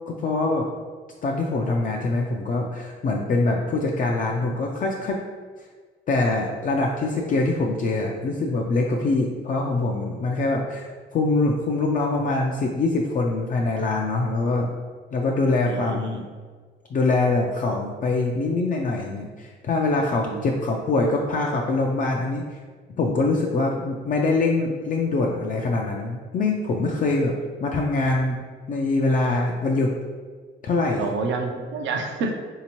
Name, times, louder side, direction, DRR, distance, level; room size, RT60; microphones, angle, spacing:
voice 1, 0.1-0.7 1.2-5.2 6.1-14.7 15.1-16.3 16.9-22.6 23.0-27.3 27.6-29.9 30.6-31.1, left 3 dB, 40° left, 0 dB, 0.4 m, -24 dB
voice 2, 15.7-16.0 20.2-20.4 31.0-32.4, right 4 dB, 70° right, 4 dB, 0.5 m, -28 dB
3.3 x 2.8 x 2.9 m, 1.5 s
cardioid pair, 90°, 20 cm